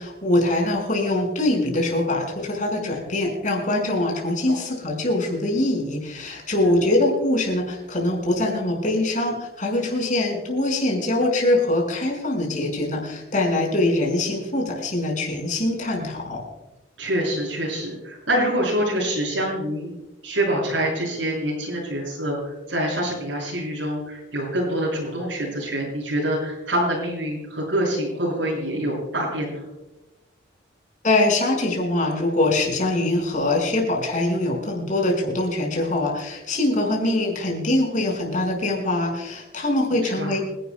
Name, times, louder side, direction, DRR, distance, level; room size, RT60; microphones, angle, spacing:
voice 1, 0.0-16.4 31.0-40.4, left 1 dB, 40° left, 0 dB, 5.1 m, -23 dB
voice 2, 17.0-19.9 20.2-29.6 40.0-40.4, right 1 dB, 75° right, -5 dB, 5.9 m, -26 dB
29.0 x 11.5 x 2.2 m, 1.0 s
head